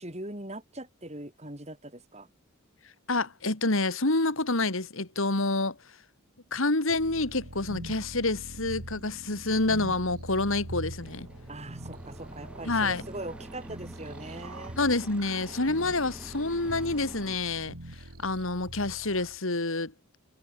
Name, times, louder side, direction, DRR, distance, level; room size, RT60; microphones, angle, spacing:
voice 1, 0.0-2.3 11.5-14.8, right 1 dB, 30° right, 5.1 m, -41 dB
voice 2, 3.1-5.8 6.5-11.3 12.6-13.0 14.8-19.9, left 2 dB, 65° left, 2.3 m, -28 dB
sound 1, 6.9-19.4, right 1 dB, 90° right, 2.8 m, -43 dB
sound 2, 11.0-17.4, equal, 5° right, 6.9 m, -47 dB
head